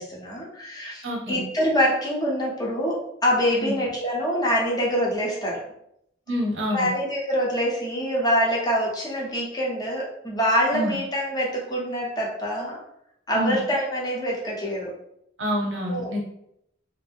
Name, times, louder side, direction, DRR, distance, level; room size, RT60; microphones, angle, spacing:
voice 1, 0.0-5.6 6.7-12.8 13.3-14.9 15.9-16.1, equal, 20° left, -4 dB, 0.8 m, -25 dB
voice 2, 1.0-1.4 3.6-3.8 6.3-6.9 10.7-10.9 13.3-13.6 15.4-16.2, equal, 85° right, -1 dB, 0.9 m, -27 dB
2.6 x 2.0 x 3.4 m, 0.76 s
head